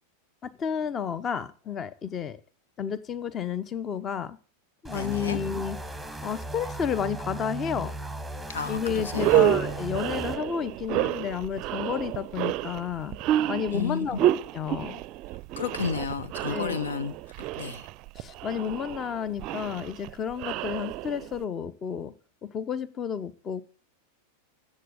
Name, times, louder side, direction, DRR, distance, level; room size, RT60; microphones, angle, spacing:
voice 1, 0.4-2.4 2.8-4.4 4.8-5.8 6.2-7.9 8.7-13.2 13.5-15.0 16.5-16.8 18.2-22.1 22.4-23.6, left 7 dB, 25° left, 0.9 m, -31 dB
sound 1, 4.8-10.4, right 2 dB, ahead, 1.2 m, -37 dB
voice 2, 4.9-5.4 8.5-9.4 13.7-14.1 15.6-17.1 17.6-17.9, left 6 dB, 65° left, 0.8 m, -32 dB
sound 2, 8.6-8.7 9.1-21.4, right 14 dB, 40° right, 0.5 m, -29 dB
14.5 x 7.5 x 6.5 m
figure-of-eight pair, 90°, 0 cm